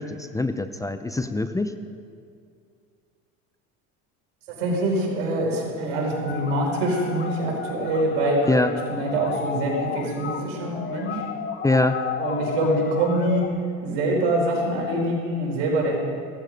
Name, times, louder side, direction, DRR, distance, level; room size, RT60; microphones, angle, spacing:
voice 1, 0.0-1.7 8.5-8.7 11.6-12.0, left 2 dB, 10° left, 9 dB, 0.6 m, -23 dB
voice 2, 4.5-8.6 8.9-11.2 12.2-13.4 13.8-16.0, right 1 dB, 85° right, -2 dB, 4.9 m, -24 dB
sound 1, 6.1-13.5, left 7 dB, 30° left, 1.0 m, -33 dB
16.5 x 14.5 x 5.3 m, 2.3 s
supercardioid pair, 105°, 36 cm